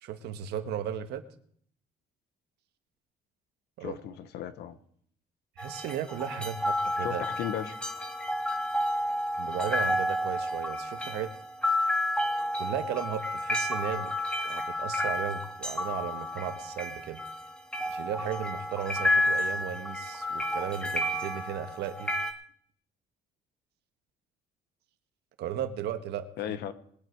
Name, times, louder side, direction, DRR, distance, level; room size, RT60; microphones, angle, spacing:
voice 1, 0.0-1.2 3.8-4.0 5.6-7.2 9.4-11.3 12.4-14.1 14.4-17.2 17.9-22.1 25.4-26.6, right 9 dB, 80° right, 9 dB, 1.4 m, -35 dB
voice 2, 3.8-4.8 7.0-7.8 26.4-26.7, left 10 dB, 75° left, 11 dB, 1.2 m, -35 dB
sound 1, 5.6-22.3, left 1 dB, 5° left, 1.7 m, -31 dB
21.0 x 8.2 x 4.7 m, 0.63 s
cardioid pair, 110°, 17 cm